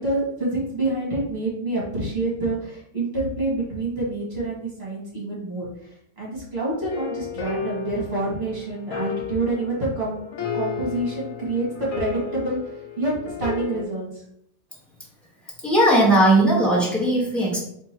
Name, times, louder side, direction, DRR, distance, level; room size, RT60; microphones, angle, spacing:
voice 1, 0.0-10.2 10.5-14.2, right 2 dB, 35° right, -6 dB, 1.6 m, -27 dB
sound 1, 6.9-13.8, left 5 dB, 60° left, 1.0 m, -33 dB
voice 2, 15.6-17.6, right 1 dB, ahead, -6 dB, 1.2 m, -18 dB
3.6 x 3.2 x 4.4 m, 0.72 s
omnidirectional pair, 1.9 m